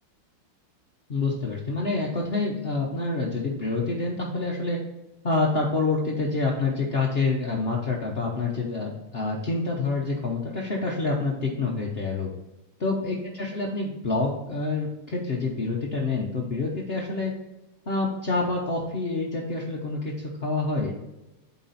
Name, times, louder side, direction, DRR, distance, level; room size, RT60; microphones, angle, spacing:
voice 1, 1.1-4.8 5.2-12.3 12.8-17.3 17.9-20.9, left 3 dB, 65° left, -2 dB, 0.5 m, -27 dB
8.3 x 4.2 x 4.1 m, 0.99 s
omnidirectional pair, 2.4 m